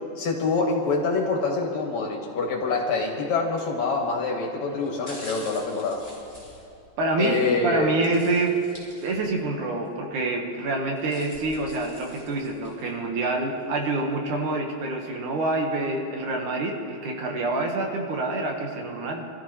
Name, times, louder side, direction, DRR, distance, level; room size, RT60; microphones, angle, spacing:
voice 1, 0.2-6.0 7.2-7.9, left 3 dB, 65° left, 0 dB, 2.8 m, -25 dB
sound 1, 3.8-4.1 4.8-7.3 8.0-9.5 9.8-9.9 10.7-12.9 13.4-13.5, equal, 5° right, 4.4 m, -46 dB
voice 2, 7.0-8.6 9.0-19.2, right 2 dB, 70° right, 1 dB, 3.0 m, -27 dB
26.0 x 14.0 x 3.2 m, 2.5 s
omnidirectional pair, 3.7 m